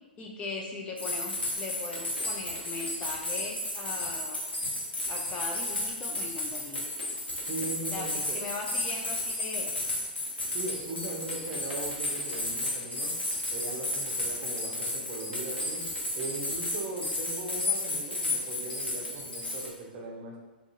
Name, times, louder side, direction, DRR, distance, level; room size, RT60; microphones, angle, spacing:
voice 1, 0.2-4.4 5.1-6.9 7.9-9.7, left 3 dB, 20° left, 0 dB, 0.3 m, -39 dB
sound 1, 1.0-19.7, left 2 dB, 80° left, 0.9 m, -33 dB
voice 2, 7.4-8.4 10.5-13.1 13.5-20.4, right 2 dB, 35° right, -1 dB, 0.6 m, -39 dB
3.6 x 2.4 x 2.6 m, 1.2 s
figure-of-eight pair, 110°, 6 cm